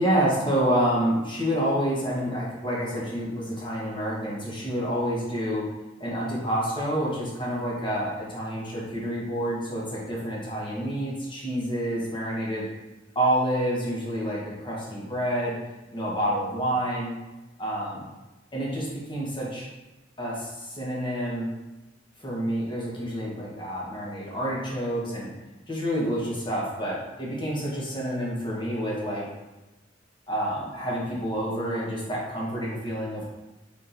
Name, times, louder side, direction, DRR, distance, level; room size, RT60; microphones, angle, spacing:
voice 1, 0.0-5.6 6.0-12.7 13.1-15.6 15.9-17.1 17.6-18.0 18.5-19.7 20.2-21.5 22.2-25.3 25.7-29.2 30.3-33.3, equal, 25° left, -5 dB, 1.0 m, -28 dB
4.2 x 3.6 x 2.5 m, 1.0 s
head